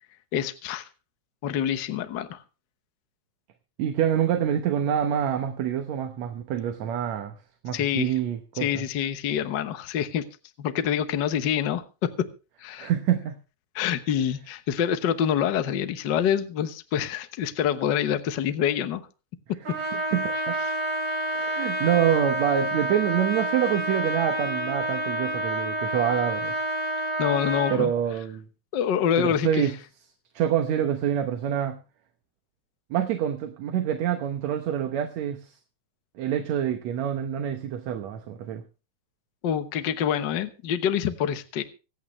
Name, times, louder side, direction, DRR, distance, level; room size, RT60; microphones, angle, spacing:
voice 1, 0.3-0.9 1.4-2.4 7.7-8.1 8.6-10.3 10.6-12.1 12.6-12.9 13.7-19.0 20.6-20.7 27.2-27.9 28.7-29.7 39.4-41.6, left 9 dB, 65° left, 1.1 m, -26 dB
voice 2, 3.8-7.3 7.6-8.7 12.8-13.4 19.9-20.6 21.3-26.5 27.7-28.4 29.2-29.8 30.4-31.8 32.9-35.6 36.2-38.6, right 10 dB, 70° right, 2.2 m, -26 dB
Trumpet, 19.6-27.8, right 1 dB, 40° right, 5.2 m, -29 dB
25.0 x 8.7 x 3.2 m
omnidirectional pair, 3.4 m